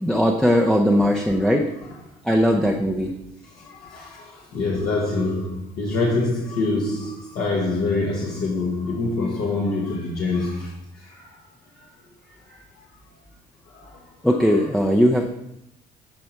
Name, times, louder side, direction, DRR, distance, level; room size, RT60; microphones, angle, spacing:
voice 1, 0.0-1.7 2.2-3.1 4.7-4.9 14.2-15.3, equal, 5° left, 0.6 m, -19 dB
voice 2, 3.4-10.7 11.0-11.4 12.5-12.6 13.7-14.0 14.4-14.7, left 3 dB, 65° left, 1.5 m, -26 dB
10.5 x 4.2 x 4.6 m
cardioid pair, 110°, 17 cm